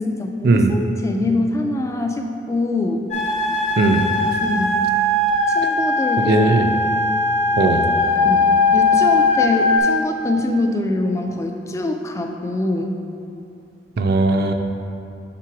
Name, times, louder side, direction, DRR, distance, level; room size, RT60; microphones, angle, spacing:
voice 1, 0.0-3.1 4.4-4.8 5.5-6.5 8.2-13.0, left 2 dB, 15° left, 3 dB, 0.3 m, -24 dB
sound 1, 3.1-9.8, left 2 dB, 35° left, 0.8 m, -19 dB
voice 2, 3.8-4.1 6.3-6.7 7.6-7.9 14.0-14.5, right 2 dB, 55° right, 5 dB, 0.4 m, -17 dB
5.9 x 3.8 x 4.6 m, 2.6 s
head